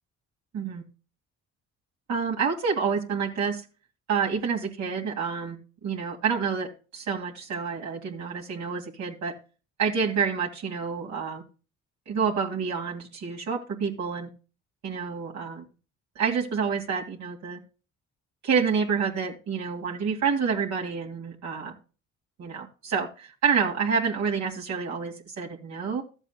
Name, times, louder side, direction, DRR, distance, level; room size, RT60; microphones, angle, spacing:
voice 1, 2.1-3.6 4.1-9.3 9.8-11.4 12.1-14.3 14.8-15.6 16.1-17.6 18.4-21.8 22.4-26.0, right 6 dB, 65° right, -1 dB, 2.5 m, -28 dB
13.5 x 8.0 x 2.3 m, 0.34 s
cardioid pair, 90°, 30 cm